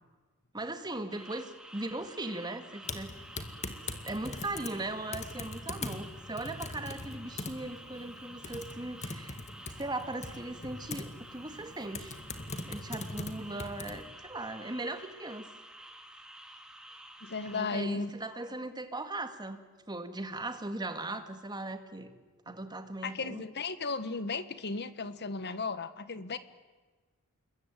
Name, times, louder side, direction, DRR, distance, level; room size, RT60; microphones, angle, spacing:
voice 1, 0.5-3.1 4.0-9.4 9.8-12.2 12.6-15.5 17.5-19.6 19.9-22.1 22.5-23.4, right 2 dB, 20° right, 8 dB, 1.9 m, -38 dB
sound 1, 1.1-17.6, right 1 dB, 5° right, 2.0 m, -51 dB
Typing, 2.8-14.0, left 3 dB, 30° left, 2.1 m, -42 dB
voice 2, 17.2-18.1 23.0-26.4, left 4 dB, 50° left, 13 dB, 1.4 m, -35 dB
27.5 x 22.0 x 9.2 m, 1.3 s
head